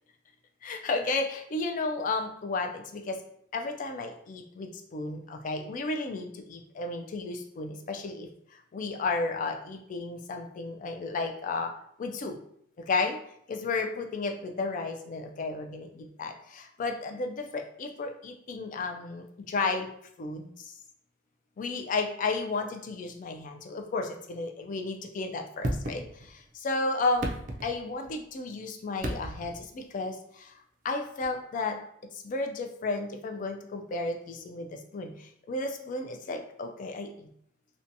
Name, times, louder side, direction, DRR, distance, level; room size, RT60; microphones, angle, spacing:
voice 1, 0.6-3.2 3.5-11.7 12.0-12.4 12.8-13.2 13.5-19.9 20.2-20.7 21.6-27.4 27.6-31.8 32.1-37.3, left 3 dB, 45° left, 5 dB, 0.3 m, -33 dB
sound 1, 25.6-26.5 27.0-28.2 29.0-29.7 31.2-31.3, right 1 dB, 40° right, 0.4 m, -34 dB
2.7 x 2.2 x 2.6 m, 0.69 s
head